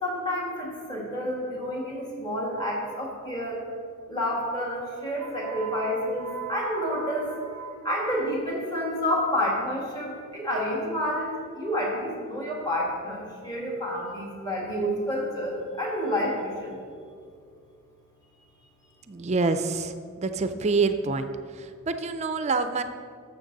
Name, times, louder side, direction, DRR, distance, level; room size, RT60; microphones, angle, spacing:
voice 1, 0.0-3.6 4.1-16.7, equal, 20° left, -3 dB, 1.9 m, -29 dB
voice 2, 19.1-19.9 20.2-21.3 21.9-22.8, right 4 dB, 30° right, 9 dB, 0.4 m, -26 dB
11.5 x 7.2 x 3.9 m, 2.3 s
head